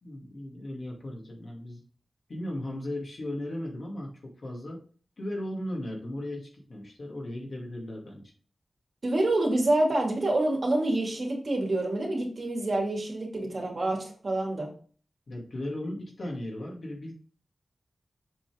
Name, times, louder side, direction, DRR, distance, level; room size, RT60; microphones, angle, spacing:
voice 1, 0.0-1.8 2.3-4.8 5.2-8.3 15.3-17.1, left 1 dB, 60° left, -1 dB, 2.4 m, -36 dB
voice 2, 9.0-14.7, right 2 dB, 55° right, 0 dB, 2.4 m, -27 dB
7.1 x 5.6 x 3.6 m, 0.43 s
wide cardioid pair, 95°, 0 cm